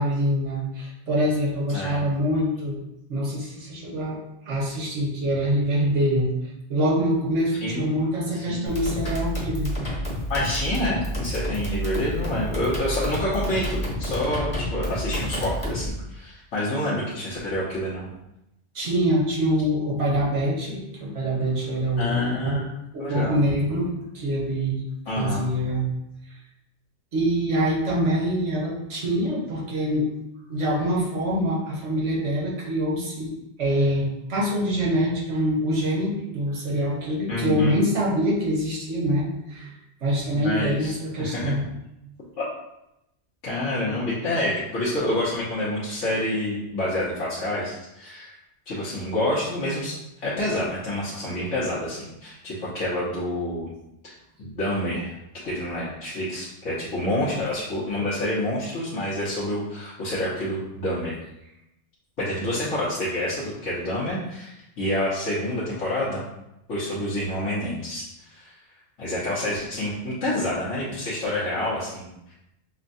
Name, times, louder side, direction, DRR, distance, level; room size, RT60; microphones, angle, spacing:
voice 1, 0.0-2.8 3.1-4.2 4.5-6.3 6.7-9.7 18.7-22.6 22.9-24.8 25.1-25.9 27.1-30.1 30.5-39.7 40.0-41.6 43.9-44.0, equal, 75° right, -4 dB, 1.3 m, -25 dB
voice 2, 8.3-8.7 10.3-18.1 22.0-22.7 23.0-23.4 25.1-25.5 37.3-37.8 40.3-41.5 42.4-42.5 43.4-48.3 48.7-53.7 54.4-55.1 55.4-61.2 62.2-66.2 66.7-68.0 68.3-68.6 69.0-72.3, left 1 dB, 90° left, -9 dB, 1.3 m, -28 dB
sound 1, 8.7-15.9, equal, 30° left, 1.0 m, -29 dB
6.2 x 2.2 x 2.6 m, 0.85 s
omnidirectional pair, 1.3 m